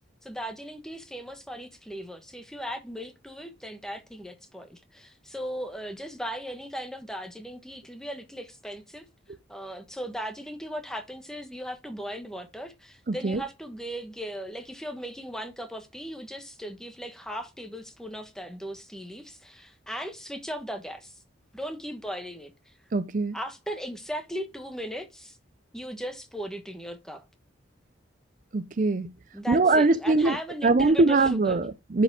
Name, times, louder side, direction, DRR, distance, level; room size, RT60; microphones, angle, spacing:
voice 1, 0.2-9.1 9.5-21.2 21.5-22.7 23.3-25.4 25.7-27.2 29.3-31.6, equal, 5° left, 1.2 m, -37 dB
voice 2, 13.1-13.4 22.9-23.4 28.5-29.1 29.5-30.3 30.6-32.0, right 3 dB, 40° right, 0.4 m, -22 dB
10.5 x 4.9 x 3.5 m
head